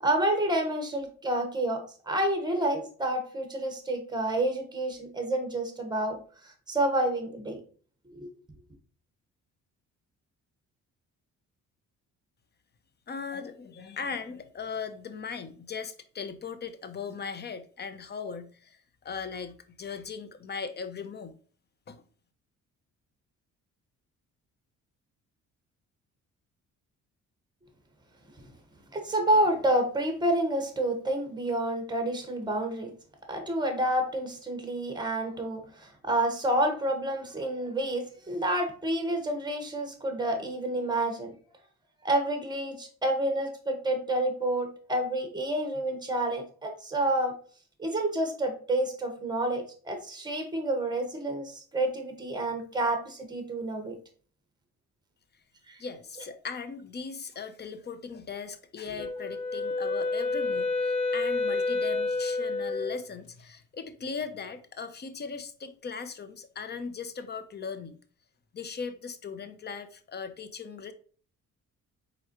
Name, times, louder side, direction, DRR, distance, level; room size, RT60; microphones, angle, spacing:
voice 1, 0.0-7.6 8.1-8.3 28.9-32.9 33.3-41.3 42.0-47.3 47.8-54.0 55.7-55.8, right 1 dB, 15° right, 1.5 m, -29 dB
voice 2, 13.1-21.3 21.9-22.0 55.8-68.0 68.5-70.9, left 5 dB, 35° left, 0.7 m, -38 dB
Wind instrument woodwind instrument, 59.0-63.0, left 3 dB, 90° left, 0.9 m, -29 dB
4.6 x 3.8 x 3.0 m
cardioid pair, 90°, 30 cm